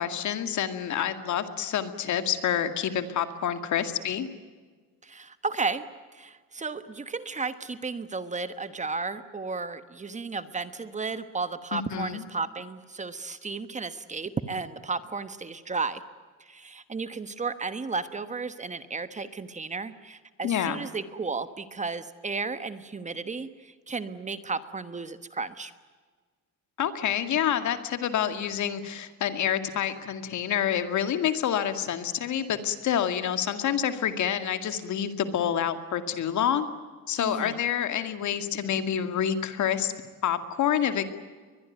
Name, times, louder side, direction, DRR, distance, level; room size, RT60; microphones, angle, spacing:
voice 1, 0.0-4.3 11.7-12.2 20.4-20.8 26.8-36.7 37.1-39.9 40.2-41.0, left 9 dB, 60° left, 9 dB, 2.2 m, -28 dB
voice 2, 5.0-5.8 6.1-16.0 16.5-25.7 37.2-37.6, right 4 dB, 20° right, 12 dB, 1.2 m, -33 dB
22.5 x 21.5 x 9.3 m, 1.4 s
cardioid pair, 125°, 34 cm